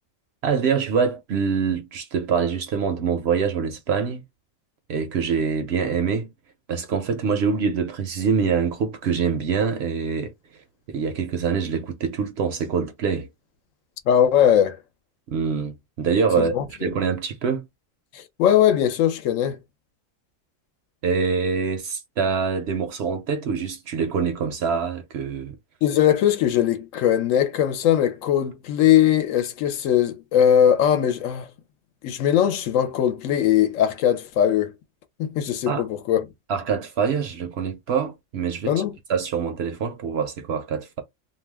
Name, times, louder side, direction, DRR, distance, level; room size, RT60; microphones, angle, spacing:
voice 1, 0.4-4.2 4.9-6.3 6.7-10.3 10.9-13.3 15.3-16.5 16.8-17.6 21.0-25.5 35.7-35.8 36.5-38.8 39.1-41.0, right 6 dB, 65° right, 0.7 m, -25 dB
voice 2, 14.1-14.8 16.4-16.6 18.1-19.6 25.8-31.5 32.0-34.7 35.2-36.3 38.7-38.9, left 10 dB, 75° left, 0.9 m, -20 dB
2.4 x 2.2 x 3.3 m
omnidirectional pair, 1.4 m